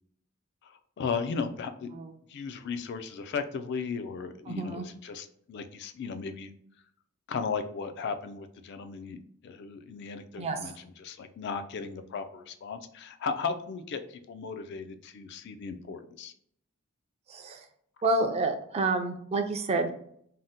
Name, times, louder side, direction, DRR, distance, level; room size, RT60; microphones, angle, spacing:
voice 1, 0.6-1.9 2.3-6.5 7.3-16.3, left 5 dB, 55° left, 8 dB, 0.3 m, -36 dB
voice 2, 4.5-4.9 10.4-10.7 17.3-17.6 18.0-19.9, right 2 dB, 30° right, 5 dB, 0.3 m, -29 dB
2.7 x 2.0 x 3.5 m, 0.67 s
head